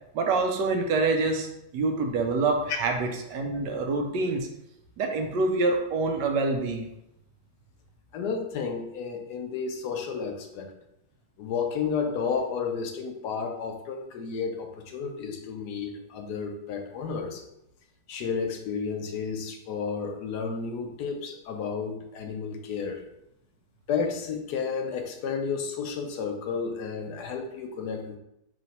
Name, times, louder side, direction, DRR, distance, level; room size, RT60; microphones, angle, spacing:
voice 1, 0.1-1.5 1.7-4.5 5.0-6.9, right 3 dB, 90° right, 3 dB, 1.3 m, -26 dB
voice 2, 8.1-10.7 11.4-17.4 18.1-23.0 23.9-28.2, left 5 dB, 75° left, 4 dB, 1.1 m, -32 dB
3.2 x 3.1 x 4.1 m, 0.82 s
omnidirectional pair, 1.8 m